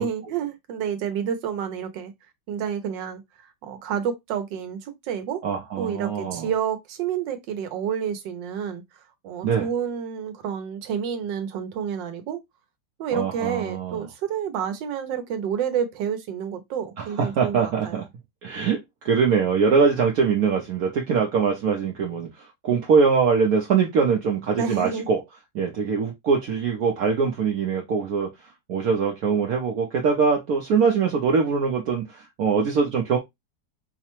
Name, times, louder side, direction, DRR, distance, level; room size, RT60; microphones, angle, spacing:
voice 1, 0.0-2.1 2.5-5.4 5.8-8.8 9.2-12.4 13.0-18.0 24.5-25.1, right 8 dB, 85° right, 1.4 m, -29 dB
voice 2, 5.4-6.5 9.4-9.7 13.1-14.0 17.0-18.0 18.4-25.2 25.5-28.3 28.7-33.2, right 5 dB, 65° right, 1.0 m, -23 dB
4.7 x 2.1 x 2.9 m
omnidirectional pair, 1.9 m